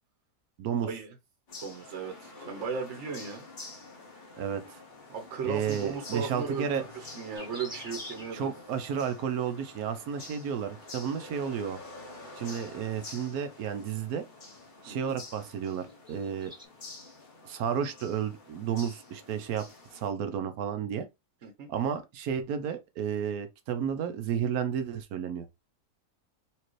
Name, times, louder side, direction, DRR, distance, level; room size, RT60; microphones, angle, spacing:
voice 1, 0.8-1.1 1.6-3.4 5.1-8.5 14.9-15.1 21.4-21.7, right 5 dB, 50° right, 1.1 m, -36 dB
sound 1, 1.5-20.1, left 3 dB, 35° left, 1.0 m, -48 dB
voice 2, 5.4-6.8 8.3-11.8 12.4-14.2 14.8-16.5 17.4-19.6 19.9-21.1 21.7-25.5, right 8 dB, 75° right, 1.1 m, -32 dB
sound 2, 7.3-8.5 9.9-10.2 11.7-12.2 12.8-13.1 13.7-13.8 14.5-14.6 14.9-15.1 15.4-16.7, equal, 5° right, 1.0 m, -45 dB
4.4 x 2.9 x 3.0 m
omnidirectional pair, 1.7 m